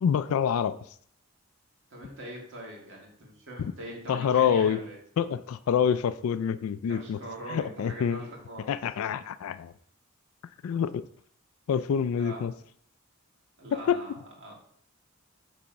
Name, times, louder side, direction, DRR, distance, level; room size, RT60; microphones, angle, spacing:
voice 1, 0.0-0.8 3.6-3.7 4.1-4.8 5.2-7.2 7.5-8.2 8.7-9.7 10.6-11.0 11.7-12.5 13.7-14.0, left 7 dB, 80° left, 13 dB, 0.3 m, -26 dB
voice 2, 1.9-5.0 6.9-8.8 12.2-12.4 13.6-14.5, right 1 dB, 60° right, -2 dB, 2.2 m, -42 dB
6.9 x 3.5 x 5.1 m, 0.62 s
head